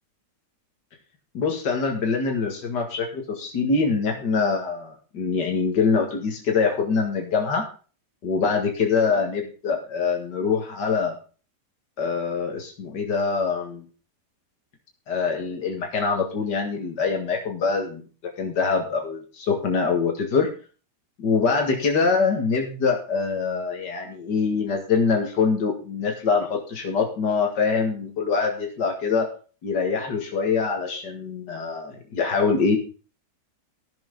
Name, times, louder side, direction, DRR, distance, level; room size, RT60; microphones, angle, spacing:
voice 1, 1.3-7.6 8.2-11.1 12.0-13.8 15.1-20.5 21.2-29.3 29.6-32.8, left 5 dB, 85° left, 2 dB, 2.5 m, -24 dB
13.5 x 7.1 x 5.2 m, 0.37 s
omnidirectional pair, 1.8 m